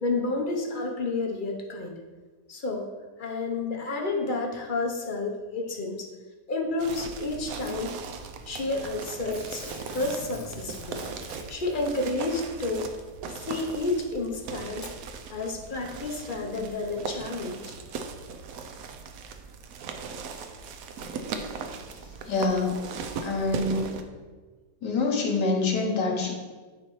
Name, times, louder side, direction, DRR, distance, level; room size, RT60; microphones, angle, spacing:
voice 1, 0.0-2.0 2.5-2.9 3.2-6.1 6.5-7.9 8.5-11.0 11.5-12.9 13.4-14.9 15.3-17.7, left 2 dB, 45° left, 1 dB, 0.7 m, -30 dB
sound 1, 6.8-24.0, right 5 dB, 70° right, 0.9 m, -38 dB
Packing tape duct tape / Tearing, 7.6-8.1 9.3-11.8 13.0-13.1 14.0-14.1 14.7-15.0 15.6-15.7, left 3 dB, 65° left, 0.3 m, -45 dB
voice 2, 22.0-22.7 23.2-24.0 24.8-26.3, left 3 dB, 80° left, 0 dB, 1.7 m, -26 dB
10.0 x 4.3 x 3.1 m, 1.4 s
omnidirectional pair, 1.8 m